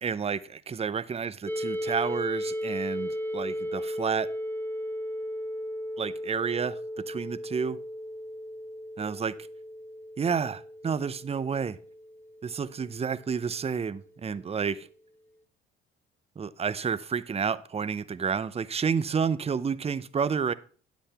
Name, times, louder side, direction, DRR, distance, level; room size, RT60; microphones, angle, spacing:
voice 1, 0.0-4.3 6.0-7.8 9.0-9.4 10.2-11.8 12.4-14.9 16.4-20.5, right 6 dB, 20° right, 0.6 m, -30 dB
sound 1, 1.5-13.2, equal, 5° left, 0.9 m, -35 dB
9.8 x 8.1 x 3.5 m
hypercardioid pair, 55°, 31 cm